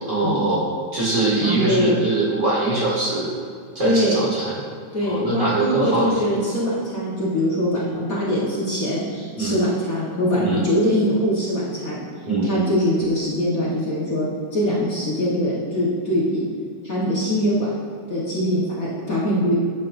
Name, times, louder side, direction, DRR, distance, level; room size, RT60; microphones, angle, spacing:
voice 1, 0.0-0.7 0.9-3.3 3.7-4.6 5.0-6.3 9.4-9.6 10.3-10.6 12.3-12.5, right 2 dB, 35° right, -7 dB, 2.4 m, -22 dB
voice 2, 1.4-2.0 3.8-4.3 4.9-12.0 12.4-16.4 16.8-17.7 18.1-19.5, equal, 45° left, -7 dB, 1.7 m, -22 dB
10.5 x 7.3 x 2.6 m, 2.3 s
omnidirectional pair, 2.2 m